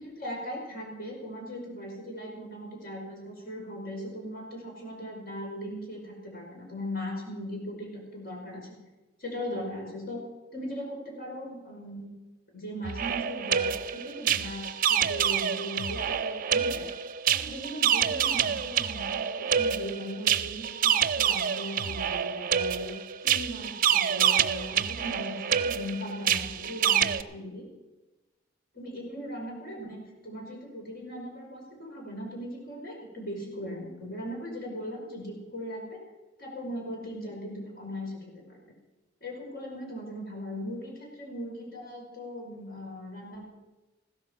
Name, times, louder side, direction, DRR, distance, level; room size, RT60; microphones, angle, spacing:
voice 1, 0.0-8.8 9.2-10.2 10.5-12.1 12.5-16.9 17.3-23.0 23.2-27.7 28.7-36.0 36.4-38.2 38.5-38.6 39.2-43.5, equal, 55° left, -1 dB, 5.4 m, -39 dB
sound 1, 12.8-27.2, right 8 dB, 50° right, 0.5 m, -27 dB
15.5 x 13.5 x 5.4 m, 1.1 s
head